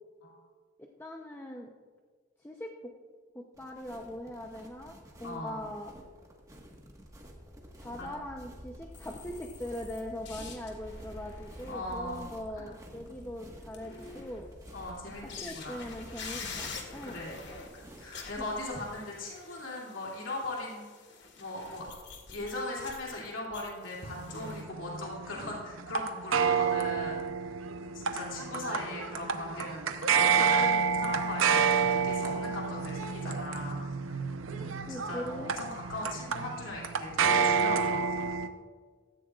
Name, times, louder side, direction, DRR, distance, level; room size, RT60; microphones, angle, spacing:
voice 1, 0.8-1.7 2.4-2.9 3.3-5.9 7.8-14.5 15.2-17.2 18.4-18.5 34.9-35.5, left 1 dB, 10° left, 0 dB, 0.7 m, -41 dB
sound 1, 3.5-18.9, equal, 15° right, 1.5 m, -50 dB
voice 2, 5.2-5.6 8.0-8.1 11.7-12.3 12.5-12.7 14.7-15.8 17.0-17.3 17.7-20.9 21.4-21.9 22.3-29.9 30.1-34.3 34.5-38.3, left 2 dB, 80° left, -4 dB, 2.7 m, -39 dB
sound 2, 8.9-12.7 13.1-13.2 13.6-14.7 15.3-24.6, left 4 dB, 60° left, 1.9 m, -47 dB
sound 3, 24.1-38.5, right 6 dB, 85° right, 0.7 m, -29 dB
16.0 x 14.0 x 2.4 m, 1.5 s
head